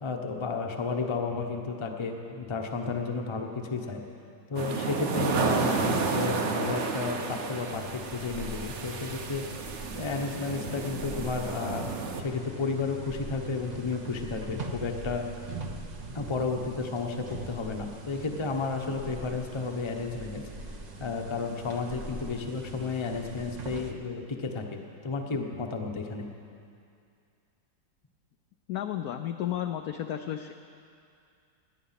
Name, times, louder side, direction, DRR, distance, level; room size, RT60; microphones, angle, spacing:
voice 1, 0.0-4.0 4.5-9.4 9.9-11.9 12.2-15.3 16.1-20.4 21.0-26.3, left 4 dB, 25° left, 3 dB, 0.6 m, -32 dB
sound 1, 4.5-12.2, right 4 dB, 50° right, 0.9 m, -31 dB
sound 2, 7.7-23.9, right 2 dB, 65° right, 0.4 m, -42 dB
voice 2, 28.7-30.5, left 11 dB, 75° left, 7 dB, 0.8 m, -32 dB
18.5 x 9.9 x 5.8 m, 2.5 s
omnidirectional pair, 2.1 m